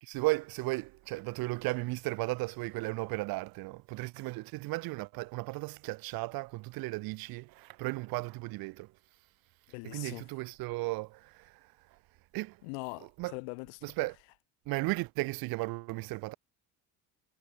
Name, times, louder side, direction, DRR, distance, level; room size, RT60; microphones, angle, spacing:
voice 1, 0.0-8.9 9.8-11.5 12.3-12.6 13.2-13.3 13.8-14.2 14.7-16.3, right 23 dB, 50° right, 0.5 m, -35 dB
voice 2, 9.7-10.3 12.6-13.9, left 40 dB or more, 65° left, 1.0 m, -42 dB
hypercardioid pair, 55°, 48 cm